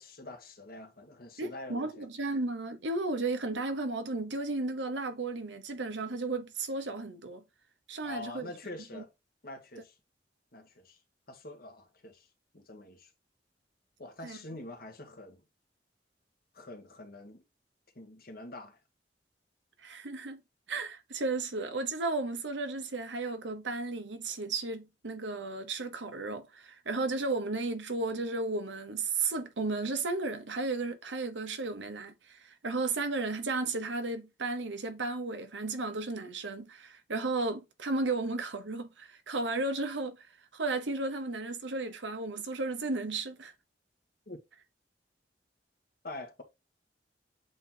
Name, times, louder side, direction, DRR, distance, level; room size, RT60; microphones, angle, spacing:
voice 1, 0.0-2.0 8.0-9.1 9.4-9.9 10.5-11.0 11.3-12.3 12.5-13.1 14.0-15.4 16.5-17.4 17.9-18.8 44.3-44.4 46.0-46.4, left 2 dB, 55° left, 1.5 m, -45 dB
voice 2, 1.4-7.4 7.9-8.5 8.9-9.0 14.2-14.4 19.8-20.4 20.7-40.3 40.5-43.5, right 3 dB, 85° right, 1.0 m, -34 dB
8.0 x 3.0 x 3.8 m
head